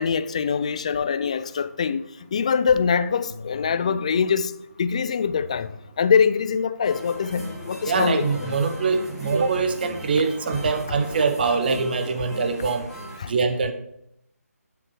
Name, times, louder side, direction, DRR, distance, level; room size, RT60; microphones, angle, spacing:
voice 1, 0.0-2.0 2.3-4.5 4.8-5.7 6.0-8.5 13.2-13.3, left 6 dB, 25° left, 0.3 m, -23 dB
sound 1, 3.3-3.8 5.2-5.8 7.3-7.8 9.2-9.8, left 2 dB, 70° left, 1.4 m, -42 dB
sound 2, 6.8-13.2, equal, 5° right, 1.6 m, -38 dB
voice 2, 7.8-12.8 13.3-13.7, right 4 dB, 35° right, 1.0 m, -23 dB
9.3 x 7.7 x 4.6 m
figure-of-eight pair, 165°, 9 cm